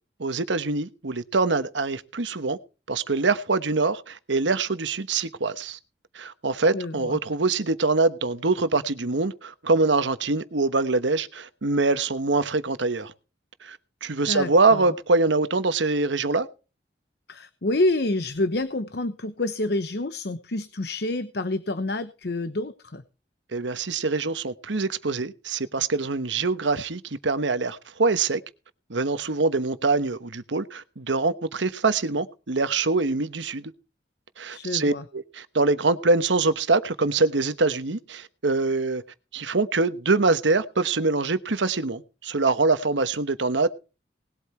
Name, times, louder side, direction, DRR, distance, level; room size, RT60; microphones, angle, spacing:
voice 1, 0.2-2.6 2.9-5.8 6.1-13.1 13.6-16.5 23.5-28.4 28.9-33.7 34.4-39.0 39.3-43.7, right 3 dB, 90° right, 1.1 m, -24 dB
voice 2, 6.7-7.2 14.3-14.9 17.3-23.0 34.5-35.0, left 2 dB, 65° left, 0.9 m, -28 dB
19.5 x 8.3 x 4.5 m
head